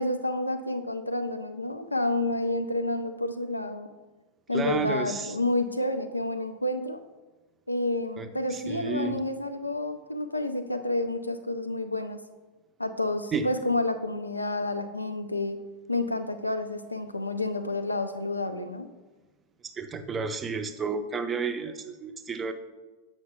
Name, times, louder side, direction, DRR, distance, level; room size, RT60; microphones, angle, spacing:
voice 1, 0.0-3.9 4.5-7.0 7.7-12.2 12.8-15.6 15.9-18.9, left 2 dB, 85° left, 9 dB, 0.3 m, -29 dB
voice 2, 4.5-5.3 8.2-9.2 13.3-13.5 19.6-22.5, right 5 dB, 20° right, 9 dB, 0.4 m, -31 dB
7.8 x 5.7 x 2.2 m, 1.2 s
figure-of-eight pair, 90°, 0 cm